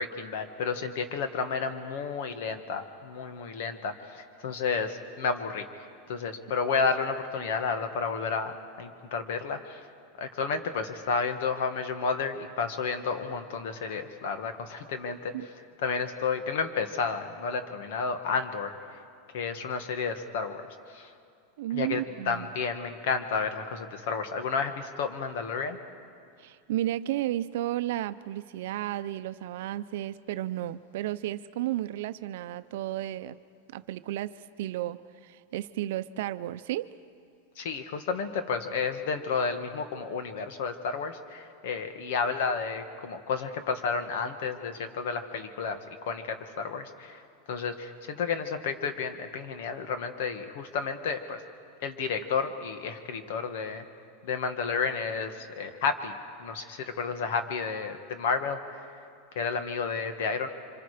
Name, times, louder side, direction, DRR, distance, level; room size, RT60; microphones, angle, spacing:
voice 1, 0.0-9.9 10.2-15.3 15.8-19.0 19.3-20.6 20.9-21.1 21.7-25.8 37.6-45.8 46.0-47.2 47.5-51.4 51.8-53.8 54.2-56.1 56.4-58.8 59.4-60.5, left 5 dB, 65° left, 8 dB, 1.8 m, -31 dB
voice 2, 21.6-22.5 26.4-33.4 33.7-35.0 35.2-36.9, right 14 dB, 70° right, 13 dB, 0.6 m, -33 dB
29.0 x 25.5 x 5.1 m, 2.3 s
supercardioid pair, 155°, 0 cm